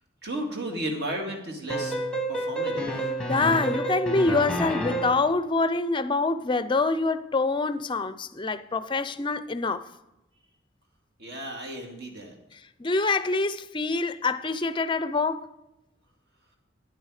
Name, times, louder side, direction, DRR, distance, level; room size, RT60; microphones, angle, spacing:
voice 1, 0.2-2.0 2.3-3.1 11.2-12.4, right 1 dB, 55° right, 2.1 m, -34 dB
sound 1, 1.7-5.3, right 1 dB, 5° left, 0.9 m, -29 dB
voice 2, 3.3-9.9 12.8-15.5, left 3 dB, 25° left, 0.5 m, -25 dB
9.8 x 9.0 x 4.8 m
head